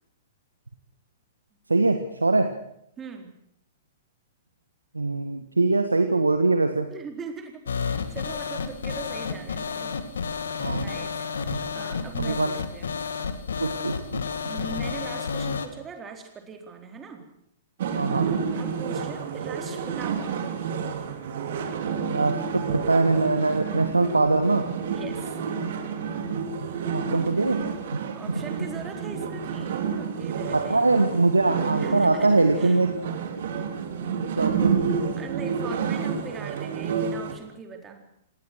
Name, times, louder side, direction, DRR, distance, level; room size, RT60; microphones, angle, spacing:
voice 1, 1.7-2.5 4.9-6.9 10.6-10.9 11.5-11.6 12.2-12.5 13.6-14.3 17.9-18.3 22.0-24.7 26.9-27.6 30.5-32.9 34.1-34.9, right 3 dB, 80° right, 8 dB, 1.7 m, -23 dB
voice 2, 3.0-3.3 6.9-9.9 10.8-13.0 14.4-17.3 18.6-20.6 24.9-25.4 28.1-30.9 31.8-32.8 34.8-34.9 35.2-38.0, right 5 dB, 20° right, 4 dB, 4.2 m, -41 dB
sound 1, 7.7-15.7, left 5 dB, 65° left, 2.2 m, -31 dB
sound 2, 17.8-37.3, right 6 dB, 50° right, 3.8 m, -29 dB
28.5 x 19.0 x 6.3 m, 0.73 s
figure-of-eight pair, 110°, 0 cm